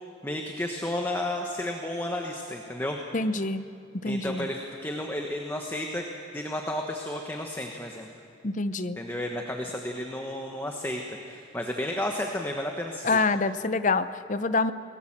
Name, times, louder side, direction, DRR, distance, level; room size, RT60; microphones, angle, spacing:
voice 1, 0.2-3.0 4.0-6.0 6.3-8.1 9.0-13.2, left 1 dB, 10° left, 2 dB, 1.2 m, -32 dB
voice 2, 3.1-3.7 4.0-4.5 8.4-9.0 13.0-14.7, left 3 dB, 40° left, 11 dB, 0.7 m, -26 dB
27.0 x 19.0 x 7.5 m, 2.5 s
head